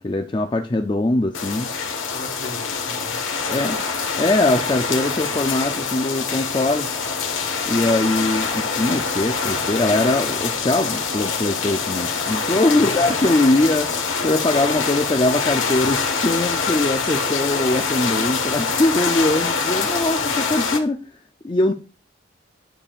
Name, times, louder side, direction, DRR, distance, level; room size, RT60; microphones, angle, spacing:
voice 1, 0.0-1.7 3.5-3.8 4.2-6.9 7.7-13.9 14.2-21.7, left 2 dB, 25° left, 0.4 m, -21 dB
sound 1, 1.3-20.8, left 5 dB, 80° left, 1.3 m, -24 dB
voice 2, 2.1-3.9 12.7-13.2, left 2 dB, 55° left, 1.0 m, -37 dB
9.8 x 6.9 x 2.4 m
head